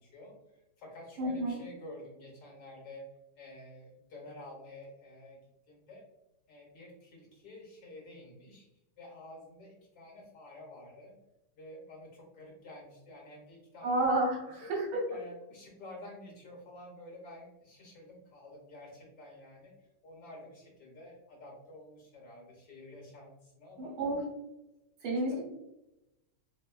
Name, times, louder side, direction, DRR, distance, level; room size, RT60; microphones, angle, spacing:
voice 1, 0.0-5.4 5.7-6.0 6.5-8.7 9.0-11.2 11.6-14.1 14.6-14.7 15.1-19.7 20.0-24.0 25.2-25.4, left 1 dB, 65° left, -1 dB, 1.3 m, -50 dB
voice 2, 1.2-1.6 13.8-15.0 23.8-24.2 25.0-25.4, right 2 dB, 70° right, -1 dB, 1.6 m, -30 dB
3.5 x 3.1 x 2.3 m, 0.93 s
omnidirectional pair, 2.3 m